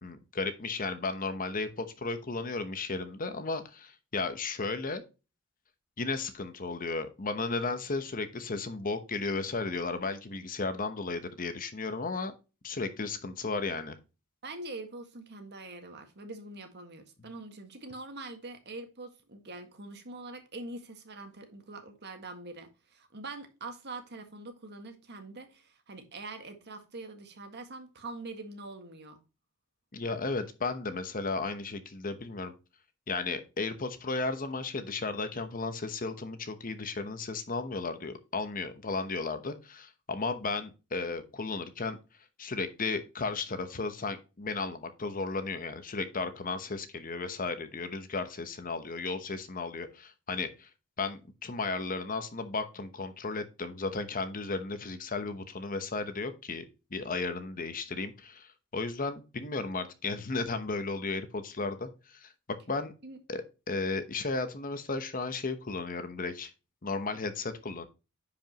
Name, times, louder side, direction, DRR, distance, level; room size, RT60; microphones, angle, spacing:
voice 1, 0.0-5.0 6.0-12.3 12.6-14.0 29.9-32.5 33.1-42.0 42.4-50.7 51.0-56.7 56.9-62.9 63.3-63.4 63.7-66.5 66.8-67.8, left 3 dB, 40° left, 1.0 m, -34 dB
voice 2, 14.4-29.2 63.0-63.2, right 2 dB, 50° right, 1.8 m, -44 dB
10.5 x 5.2 x 3.0 m
head